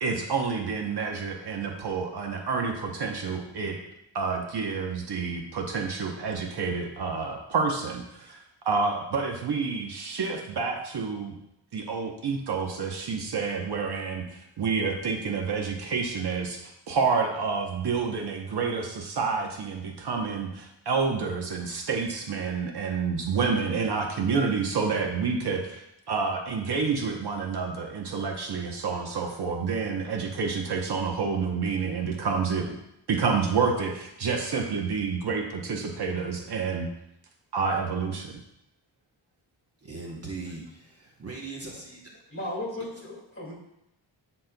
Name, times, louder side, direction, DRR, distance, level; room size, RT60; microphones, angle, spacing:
voice 1, 0.0-3.8 4.1-11.4 11.7-32.8 33.1-36.9 37.5-38.4, right 5 dB, 60° right, 2 dB, 0.9 m, -29 dB
voice 2, 39.8-42.2, right 3 dB, 35° right, -2 dB, 0.9 m, -40 dB
voice 3, 42.3-43.5, left 1 dB, 30° left, -3 dB, 2.1 m, -35 dB
11.5 x 4.3 x 2.2 m, 0.83 s
wide cardioid pair, 140°, 44 cm